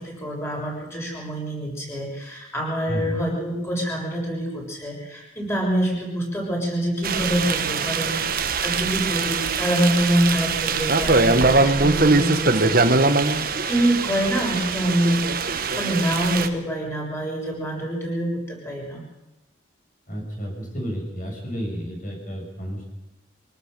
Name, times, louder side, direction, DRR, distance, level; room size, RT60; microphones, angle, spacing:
voice 1, 0.0-13.4 13.7-15.2 15.5-19.0, right 1 dB, 15° left, -1 dB, 6.6 m, -26 dB
sound 1, 7.0-16.5, right 3 dB, 50° right, 1.3 m, -22 dB
voice 2, 20.1-22.8, equal, 40° left, 1 dB, 7.1 m, -31 dB
25.0 x 18.5 x 6.8 m, 1.0 s
head